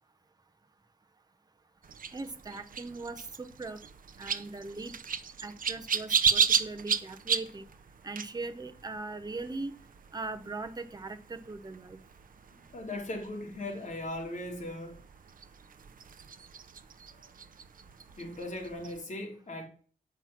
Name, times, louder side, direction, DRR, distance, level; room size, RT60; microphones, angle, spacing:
sound 1, 1.8-19.0, right 6 dB, 75° right, 0.7 m, -35 dB
voice 1, 2.1-3.8 4.2-4.9 5.4-7.7 8.0-9.7 10.1-12.0, right 3 dB, 30° right, 0.9 m, -40 dB
voice 2, 12.5-15.0 17.1-17.3 18.1-19.7, left 1 dB, 60° left, 3.0 m, -39 dB
8.9 x 6.0 x 7.2 m
wide cardioid pair, 130°, 14 cm